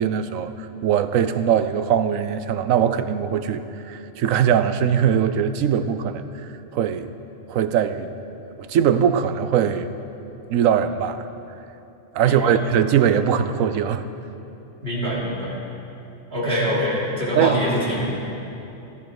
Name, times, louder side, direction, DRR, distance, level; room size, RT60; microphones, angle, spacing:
voice 1, 0.0-6.2 6.7-7.1 7.5-8.1 8.6-9.9 10.5-11.3 12.1-14.0 17.4-17.6, right 8 dB, 80° right, 11 dB, 1.0 m, -21 dB
voice 2, 12.2-12.6 14.8-15.6 16.3-18.1, equal, 50° right, -6 dB, 3.3 m, -24 dB
15.0 x 12.5 x 4.7 m, 2.9 s
omnidirectional pair, 1.4 m